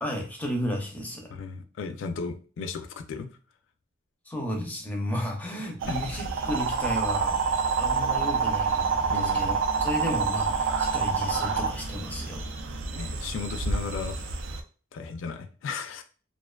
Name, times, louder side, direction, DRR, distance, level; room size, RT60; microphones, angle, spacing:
voice 1, 0.0-1.3 4.3-7.4 7.8-12.4, left 1 dB, 10° left, 1 dB, 0.5 m, -33 dB
voice 2, 1.3-3.3 5.9-6.0 9.1-9.4 12.9-14.2 14.9-16.0, left 5 dB, 70° left, 7 dB, 0.3 m, -35 dB
sound 1, 5.8-14.6, right 5 dB, 70° right, 0.3 m, -28 dB
2.4 x 2.3 x 2.2 m, 0.38 s
head